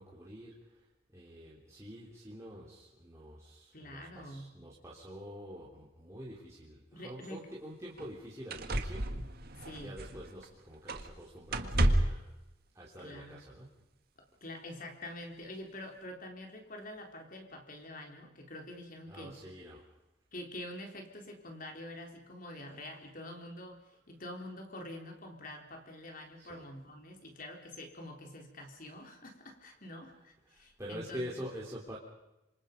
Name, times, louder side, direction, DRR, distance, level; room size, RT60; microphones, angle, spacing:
voice 1, 0.0-9.2 9.7-12.3 12.7-13.7 19.1-19.9 26.4-26.6 30.5-32.0, equal, 15° right, -6 dB, 3.3 m, -46 dB
voice 2, 3.7-4.5 6.9-7.4 9.6-9.9 13.0-13.4 14.2-19.4 20.3-31.3, left 1 dB, 45° left, 3 dB, 3.8 m, -46 dB
sound 1, 7.2-7.3 8.0-8.1 8.5-10.5 10.9-11.2 11.5-12.3 13.4-13.5, right 1 dB, 50° right, 1.7 m, -31 dB
26.5 x 25.5 x 5.3 m, 0.95 s
head